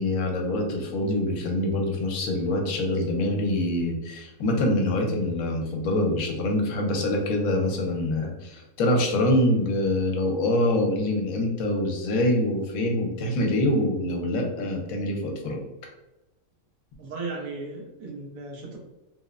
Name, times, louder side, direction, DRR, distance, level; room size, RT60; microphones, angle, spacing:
voice 1, 0.0-15.6, left 1 dB, 80° left, 2 dB, 1.0 m, -25 dB
voice 2, 17.0-18.8, right 3 dB, 80° right, 0 dB, 1.1 m, -36 dB
3.1 x 2.0 x 2.3 m, 0.97 s
omnidirectional pair, 1.5 m